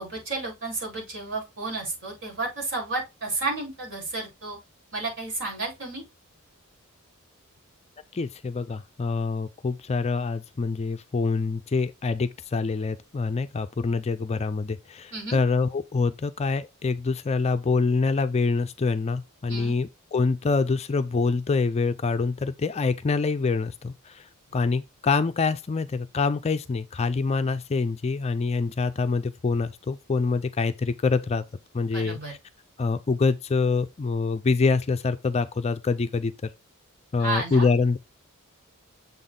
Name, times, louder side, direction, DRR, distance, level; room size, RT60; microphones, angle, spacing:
voice 1, 0.0-4.6 4.9-6.0 15.1-15.4 19.5-19.8 31.9-32.3 37.2-37.7, right 3 dB, 60° right, 4.3 m, -32 dB
voice 2, 8.1-24.2 24.5-31.4 31.7-32.2 32.8-36.3 37.1-38.0, left 4 dB, 30° left, 0.4 m, -25 dB
7.0 x 3.9 x 3.7 m
head